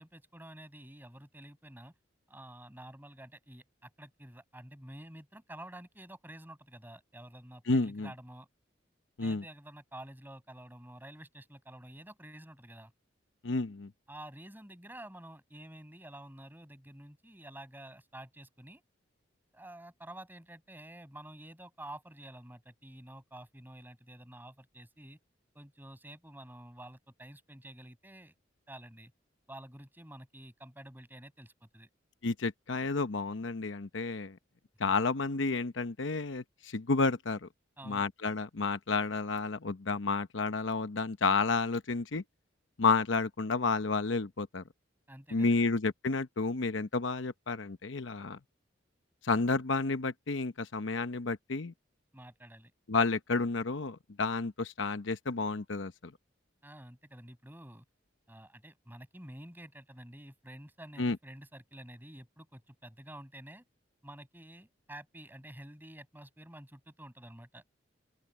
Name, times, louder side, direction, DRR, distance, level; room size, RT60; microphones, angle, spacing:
voice 1, 0.0-1.9 2.3-8.5 9.2-12.9 14.1-18.8 19.5-25.2 25.5-28.3 28.7-29.1 29.5-31.9 37.8-38.1 45.1-45.7 52.1-52.7 56.6-57.8 58.3-63.6 64.0-67.6, right 1 dB, 10° right, 6.6 m, -50 dB
voice 2, 7.7-8.1 9.2-9.4 13.4-13.9 32.2-34.4 34.8-37.5 37.9-42.2 42.8-44.6 45.3-48.4 49.2-51.7 52.9-55.9 61.0-61.2, left 3 dB, 75° left, 0.9 m, -31 dB
open air
head